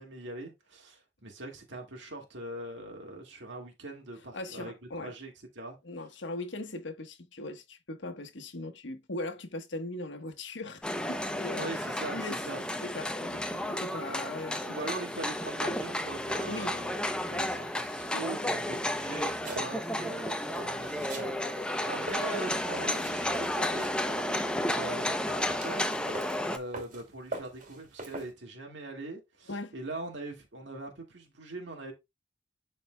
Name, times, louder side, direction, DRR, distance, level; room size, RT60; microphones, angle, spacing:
voice 1, 0.0-4.7 5.0-5.8 11.5-12.6 14.6-23.9 24.3-26.0 26.5-31.9, right 2 dB, 75° right, 2.0 m, -41 dB
voice 2, 4.3-5.1 5.8-12.4 12.8-14.9 16.5-16.8 29.5-29.7, left 2 dB, 75° left, 1.2 m, -39 dB
sound 1, 10.8-26.6, left 1 dB, 5° left, 0.6 m, -32 dB
sound 2, 19.4-20.0 20.5-21.3 21.6-24.3 24.9-27.0 27.3-28.3, right 2 dB, 45° right, 2.5 m, -42 dB
11.5 x 4.3 x 2.2 m
head